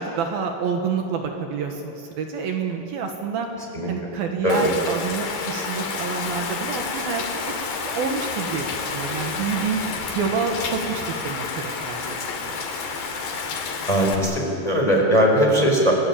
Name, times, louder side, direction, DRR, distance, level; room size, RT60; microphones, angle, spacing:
voice 1, 0.0-3.5 3.9-7.5 7.8-9.8 10.1-12.6, right 5 dB, 70° right, 3 dB, 3.2 m, -28 dB
Rain, 4.5-14.1, left 4 dB, 75° left, 4.5 m, -30 dB
voice 2, 13.9-15.9, equal, 10° left, -1 dB, 4.5 m, -19 dB
29.5 x 19.5 x 8.7 m, 2.8 s
omnidirectional pair, 4.7 m